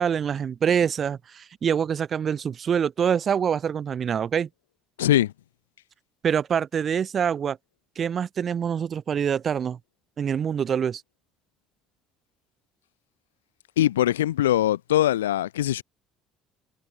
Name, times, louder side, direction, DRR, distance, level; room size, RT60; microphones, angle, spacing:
voice 1, 0.0-4.5 6.2-7.6 8.0-9.8 10.2-11.0, right 7 dB, 45° right, 2.1 m, -25 dB
voice 2, 5.0-5.3 13.8-15.8, left 13 dB, 80° left, 0.9 m, -22 dB
figure-of-eight pair, 55°, 0 cm